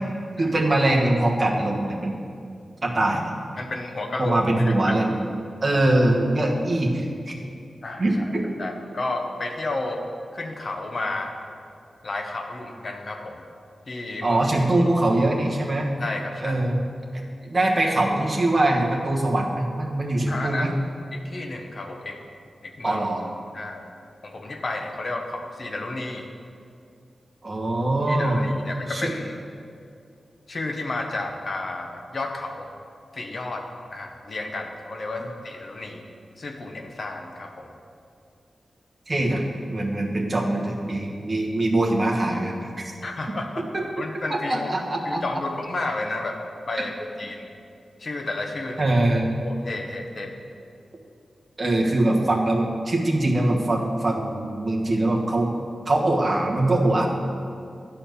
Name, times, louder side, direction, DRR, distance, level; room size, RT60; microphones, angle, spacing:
voice 1, 0.4-2.2 2.8-3.2 4.2-5.1 5.6-7.3 8.0-8.4 14.2-15.9 16.4-16.9 17.1-20.7 22.8-23.2 27.4-28.4 28.9-29.1 39.1-39.4 39.7-42.5 43.7-43.8 44.3-45.2 48.8-49.3 51.6-55.5 55.9-57.1, right 1 dB, 35° right, -1 dB, 1.3 m, -22 dB
voice 2, 3.6-4.9 7.8-8.3 8.6-10.0 10.3-11.3 12.0-13.4 13.9-14.4 14.8-14.9 16.0-16.6 20.3-20.7 21.1-22.2 22.6-23.0 23.5-23.8 24.2-26.3 28.1-29.3 30.5-32.7 33.1-36.0 36.4-37.7 43.0-43.6 44.0-44.7 45.0-46.4 46.7-47.5 48.0-48.9 49.4-50.3, left 2 dB, 50° left, 3 dB, 1.0 m, -32 dB
11.0 x 4.4 x 6.8 m, 2.4 s
wide cardioid pair, 130°, 0 cm